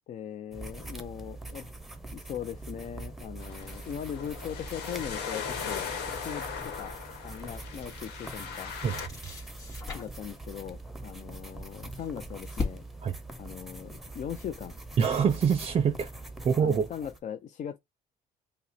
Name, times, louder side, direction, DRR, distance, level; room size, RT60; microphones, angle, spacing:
voice 1, 0.1-1.7 2.1-7.0 7.2-8.7 9.9-12.8 13.4-14.8 16.6-17.8, left 9 dB, 45° left, 0.4 m, -39 dB
sound 1, 0.5-17.2, right 2 dB, ahead, 0.8 m, -43 dB
sound 2, 3.4-9.1, left 6 dB, 80° left, 1.1 m, -38 dB
sound 3, 6.5-6.8 7.7-8.5 8.8-10.3 11.5-13.2, left 4 dB, 20° left, 2.3 m, -38 dB
voice 2, 15.0-16.1 16.4-16.9, right 7 dB, 35° right, 0.5 m, -25 dB
5.5 x 2.1 x 4.1 m
cardioid pair, 110°, 17 cm